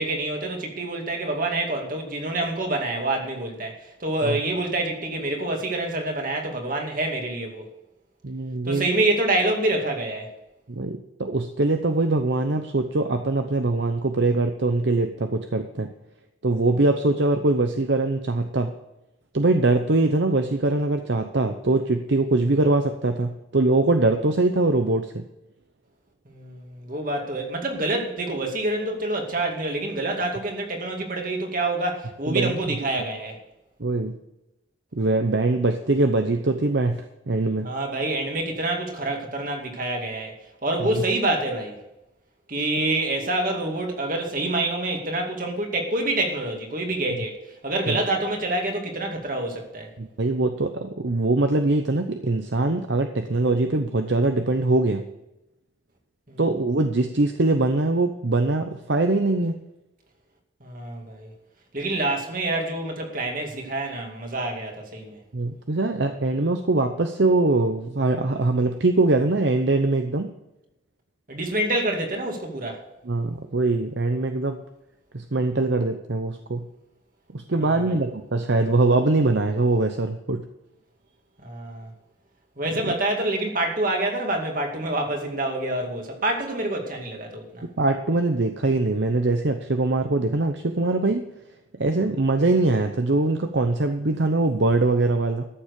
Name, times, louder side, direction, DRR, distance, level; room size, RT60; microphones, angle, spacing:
voice 1, 0.0-7.7 8.6-10.3 26.3-33.4 37.6-40.3 40.6-41.8 42.5-47.4 47.6-49.9 56.3-56.4 60.6-61.3 61.7-65.2 71.3-72.8 77.5-78.0 81.4-81.9 82.6-87.7, right 2 dB, 45° right, 2 dB, 2.3 m, -27 dB
voice 2, 8.2-8.9 10.7-15.9 16.4-18.7 19.3-25.2 32.3-32.8 33.8-34.2 34.9-37.7 40.8-41.0 47.9-48.0 50.0-55.0 56.4-59.6 65.3-70.3 73.0-74.6 75.1-76.7 77.3-80.5 82.9-83.0 87.8-91.3 91.8-95.5, right 2 dB, 60° right, 6 dB, 0.8 m, -22 dB
13.5 x 7.4 x 6.7 m, 0.92 s
head